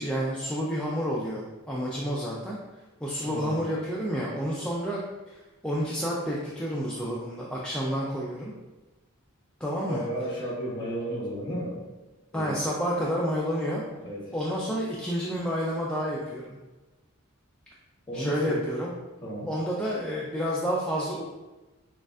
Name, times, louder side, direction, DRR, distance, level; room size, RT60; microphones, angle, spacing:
voice 1, 0.0-2.6 3.0-5.0 5.3-5.4 5.6-8.5 9.6-10.0 12.3-13.8 14.3-16.6 18.1-18.9 19.5-21.2, equal, 5° left, -5 dB, 0.4 m, -29 dB
voice 2, 3.2-3.7 9.9-11.8 12.3-12.6 14.0-14.3 18.1-18.6 19.2-19.5, right 1 dB, 20° left, -5 dB, 1.1 m, -33 dB
6.3 x 2.4 x 2.4 m, 1.1 s
head